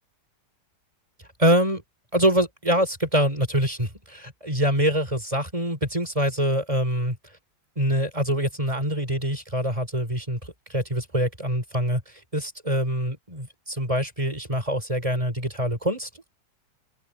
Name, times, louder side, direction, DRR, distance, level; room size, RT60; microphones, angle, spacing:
voice 1, 1.4-1.8 2.1-7.2 7.8-10.4 10.7-12.0 12.3-16.3, equal, 15° right, 5.0 m, -24 dB
open air
omnidirectional pair, 2.1 m